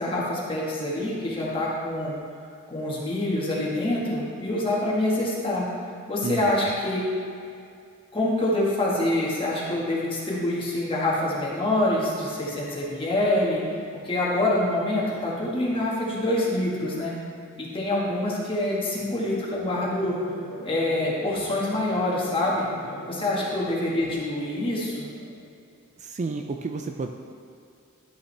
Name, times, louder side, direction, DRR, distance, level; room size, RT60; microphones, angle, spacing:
voice 1, 0.0-2.2 2.7-5.7 6.1-7.0 8.1-13.6 14.0-17.1 17.6-20.2 20.6-22.6 23.1-25.1, left 1 dB, 25° left, -5 dB, 1.7 m, -26 dB
sound 1, 19.6-25.6, left 1 dB, 85° left, 1.9 m, -42 dB
voice 2, 26.0-27.1, right 4 dB, 35° right, 4 dB, 0.3 m, -30 dB
11.5 x 5.7 x 3.3 m, 2.4 s
head